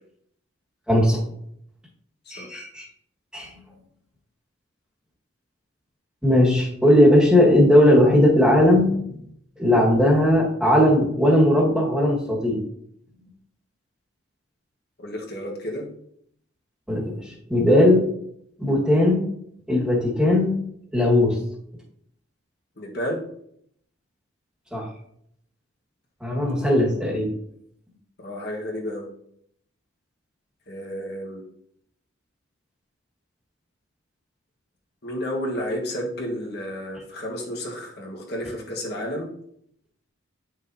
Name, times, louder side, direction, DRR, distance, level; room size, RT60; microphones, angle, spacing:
voice 1, 0.9-1.2 2.3-2.9 3.3-3.5 6.2-9.0 9.6-12.6 16.9-18.1 18.6-19.2 19.7-20.6 20.9-21.4 24.7-24.9 26.2-27.3, left 1 dB, 5° right, -3 dB, 1.6 m, -18 dB
voice 2, 15.0-15.9 22.8-23.2 26.5-26.7 28.2-29.1 30.7-31.4 35.0-39.3, equal, 55° left, -1 dB, 1.4 m, -31 dB
9.4 x 6.2 x 2.8 m, 0.70 s
head